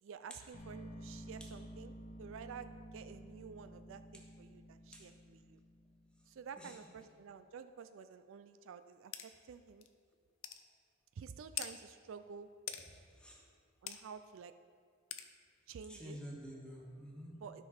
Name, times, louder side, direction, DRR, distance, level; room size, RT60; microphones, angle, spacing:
voice 1, 0.0-5.6 6.3-9.9 11.2-12.5 13.8-14.5 15.7-16.2 17.4-17.7, right 6 dB, 70° right, 11 dB, 0.4 m, -51 dB
sound 1, 0.5-6.6, equal, 35° left, 0.9 m, -52 dB
sound 2, 9.1-9.3 9.8-9.9 10.4-10.6 11.6-11.7 12.7-12.8 13.9-14.0 15.1-15.3, left 10 dB, 75° left, 0.6 m, -41 dB
voice 2, 12.9-13.4 15.9-17.4, equal, 5° left, -3 dB, 1.5 m, -49 dB
12.5 x 5.8 x 4.3 m, 2.1 s
head